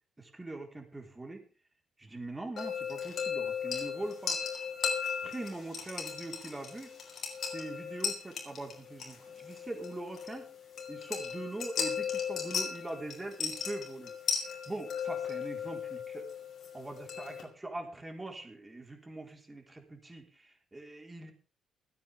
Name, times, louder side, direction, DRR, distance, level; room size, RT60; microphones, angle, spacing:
voice 1, 0.2-1.4 2.0-4.4 5.2-6.9 7.5-10.5 10.9-16.3 16.7-21.3, right 2 dB, 15° right, 2 dB, 4.4 m, -42 dB
sound 1, 2.6-17.4, left 7 dB, 55° left, 5.4 m, -37 dB
28.0 x 9.4 x 3.6 m, 0.37 s
cardioid pair, 90°, 0 cm